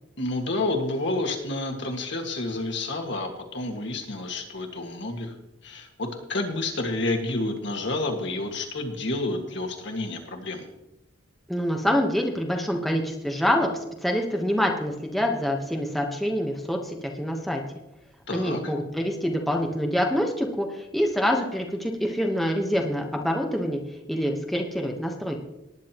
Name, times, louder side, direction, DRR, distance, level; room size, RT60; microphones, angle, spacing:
voice 1, 0.2-5.3 5.6-10.7 18.3-18.6, left 2 dB, 60° left, 2 dB, 1.8 m, -29 dB
voice 2, 11.5-13.7 14.0-17.6 18.3-23.8 24.1-25.4, equal, ahead, 1 dB, 1.0 m, -26 dB
19.0 x 9.9 x 3.0 m, 0.91 s
head